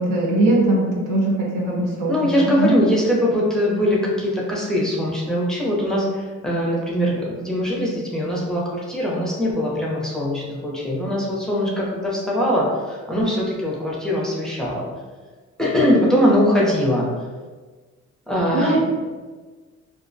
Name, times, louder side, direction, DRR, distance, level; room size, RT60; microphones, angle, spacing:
voice 1, 0.0-2.3 2.6-2.8 18.5-18.8, right 2 dB, 85° right, -3 dB, 0.7 m, -20 dB
voice 2, 2.1-14.8 15.6-17.1 18.3-18.8, equal, ahead, -4 dB, 0.6 m, -21 dB
2.3 x 2.0 x 2.6 m, 1.4 s
cardioid pair, 90°, 30 cm